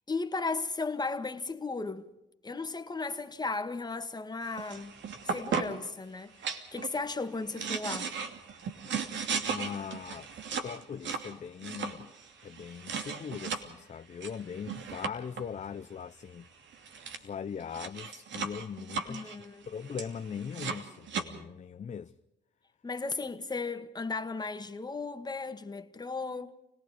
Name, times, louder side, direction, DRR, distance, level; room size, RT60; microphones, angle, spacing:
voice 1, 0.1-2.1 2.4-4.9 5.2-8.1 19.1-19.6 22.8-26.5, left 3 dB, 20° left, 1.9 m, -35 dB
sound 1, 4.5-5.9 6.4-7.0 7.4-13.6 14.2-15.4 16.5-16.6 16.7-17.2 17.6-21.2, right 6 dB, 65° right, 2.7 m, -36 dB
voice 2, 9.5-10.3 10.6-12.1 12.4-16.5 17.2-19.3 19.7-22.1, left 7 dB, 35° left, 0.7 m, -40 dB
30.0 x 19.0 x 5.1 m
cardioid pair, 90°, 20 cm